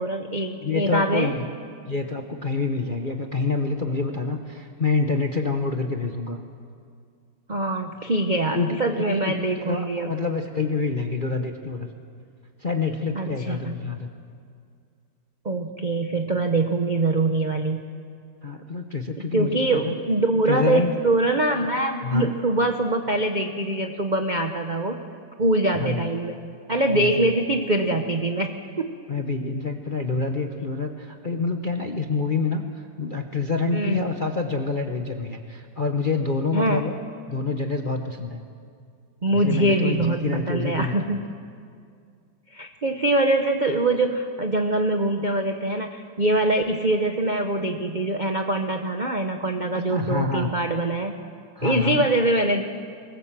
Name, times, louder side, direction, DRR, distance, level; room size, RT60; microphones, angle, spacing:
voice 1, 0.0-1.3 7.5-10.1 13.1-13.7 15.4-17.8 19.3-25.0 25.4-26.4 26.7-28.9 33.7-34.0 36.5-36.8 39.2-41.2 42.5-51.1 51.6-52.6, right 2 dB, 60° right, 5 dB, 0.4 m, -23 dB
voice 2, 0.6-1.5 1.9-6.4 8.5-11.9 12.6-14.1 18.4-19.9 20.5-20.9 22.0-22.3 25.7-26.0 26.9-27.3 29.1-32.6 33.0-36.9 37.3-38.4 39.3-41.2 49.7-50.5 51.6-52.1, left 4 dB, 45° left, 4 dB, 0.6 m, -27 dB
23.0 x 20.0 x 7.5 m, 2.2 s
omnidirectional pair, 2.4 m